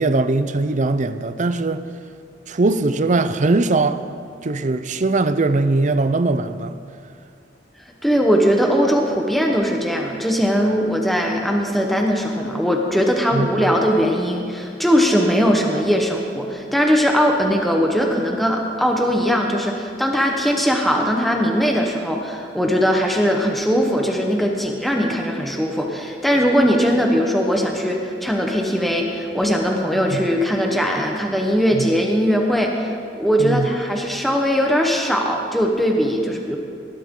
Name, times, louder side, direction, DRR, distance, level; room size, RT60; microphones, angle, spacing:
voice 1, 0.0-1.8 2.5-4.0 4.4-6.7 13.3-13.7 30.1-30.3 31.7-31.9 33.4-33.7, right 3 dB, 45° right, 0.6 m, -20 dB
voice 2, 8.0-36.6, equal, ahead, 1.1 m, -20 dB
19.5 x 12.5 x 3.8 m
head